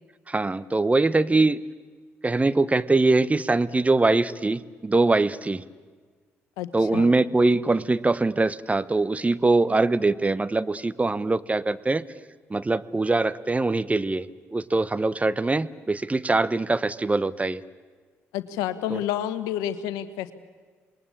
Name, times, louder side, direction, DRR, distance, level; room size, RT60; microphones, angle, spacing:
voice 1, 0.3-1.6 2.2-5.6 6.7-12.0 12.5-14.3 14.5-17.6 18.9-19.0, right 3 dB, 20° right, 16 dB, 1.0 m, -22 dB
voice 2, 6.6-7.1 18.3-20.3, left 11 dB, 80° left, 13 dB, 1.1 m, -29 dB
27.0 x 21.0 x 8.6 m, 1.5 s
hypercardioid pair, 50°, 6 cm